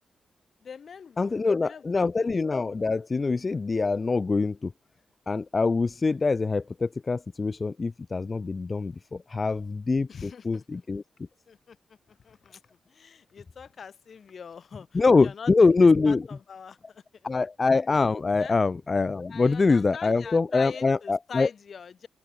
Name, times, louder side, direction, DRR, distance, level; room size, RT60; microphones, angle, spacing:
voice 1, 0.6-2.1 10.1-10.8 11.5-11.8 12.2-12.6 12.9-15.7 16.1-17.0 18.4-18.6 19.3-22.1, left 6 dB, 60° left, 4.3 m, -43 dB
voice 2, 1.2-4.7 5.3-11.0 14.9-16.3 17.2-21.5, left 4 dB, 35° left, 1.1 m, -24 dB
open air
cardioid pair, 65°, 0 cm